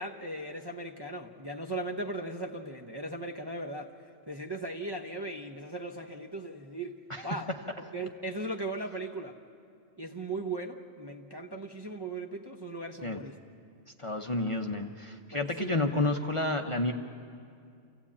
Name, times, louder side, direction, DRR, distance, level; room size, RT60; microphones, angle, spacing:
voice 1, 0.0-3.9 4.3-7.5 7.9-9.4 10.0-13.3 15.3-15.7, right 2 dB, 25° right, 0 dB, 0.8 m, -38 dB
voice 2, 14.0-16.9, left 2 dB, 30° left, 3 dB, 0.8 m, -30 dB
28.0 x 15.5 x 8.6 m, 2.4 s
omnidirectional pair, 1.3 m